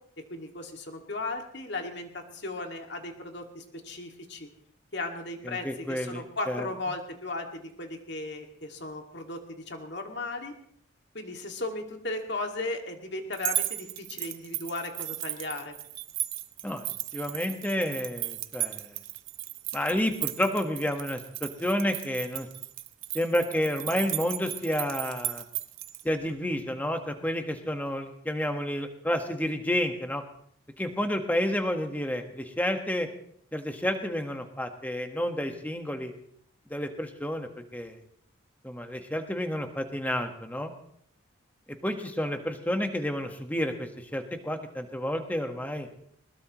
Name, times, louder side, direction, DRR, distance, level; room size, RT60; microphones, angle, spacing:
voice 1, 0.3-4.5 4.9-10.5 11.1-15.7, left 2 dB, 55° left, 3 dB, 2.3 m, -36 dB
voice 2, 5.4-6.7 16.6-16.9 17.1-18.9 19.7-22.5 23.1-25.4 26.0-30.2 30.8-33.1 33.5-36.1 36.7-38.0 38.6-40.7 41.8-45.9, left 1 dB, 10° left, 5 dB, 1.4 m, -30 dB
sound 1, 13.3-26.0, right 14 dB, 75° right, 0.8 m, -35 dB
21.0 x 20.5 x 3.1 m, 0.66 s
head